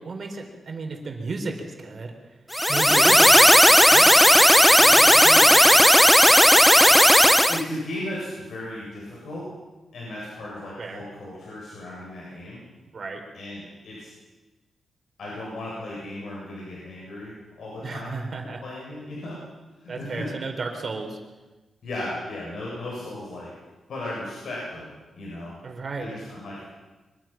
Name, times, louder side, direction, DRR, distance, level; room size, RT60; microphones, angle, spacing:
voice 1, 0.0-2.1 2.7-4.1 10.8-11.0 12.9-13.2 17.8-18.6 19.9-21.2 25.6-26.1, right 3 dB, 45° right, 4 dB, 4.0 m, -33 dB
sound 1, 2.5-7.6, equal, 5° left, 0.7 m, -14 dB
voice 2, 4.7-5.7 7.5-9.4 9.9-12.6 13.3-14.1 15.2-19.4 19.8-20.3 21.8-23.5 23.9-24.9 25.2-25.5 26.0-26.7, left 1 dB, 75° left, -5 dB, 7.9 m, -36 dB
24.0 x 23.0 x 6.0 m, 1.2 s
wide cardioid pair, 145°, 0 cm